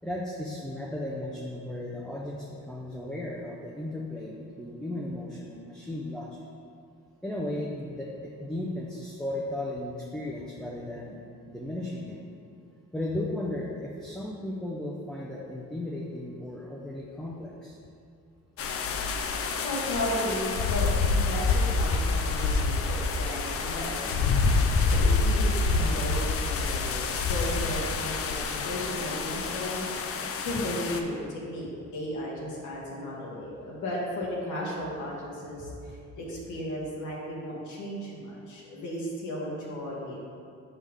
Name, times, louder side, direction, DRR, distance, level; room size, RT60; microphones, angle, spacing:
voice 1, 0.0-6.4 7.2-11.2 11.5-12.2 12.9-17.8 30.6-30.7, left 1 dB, ahead, -4 dB, 0.6 m, -35 dB
sound 1, 18.6-31.0, left 4 dB, 50° left, 0.5 m, -27 dB
voice 2, 19.6-40.3, left 1 dB, 75° left, -4 dB, 1.4 m, -35 dB
5.6 x 4.9 x 3.4 m, 2.4 s
cardioid pair, 90°, 30 cm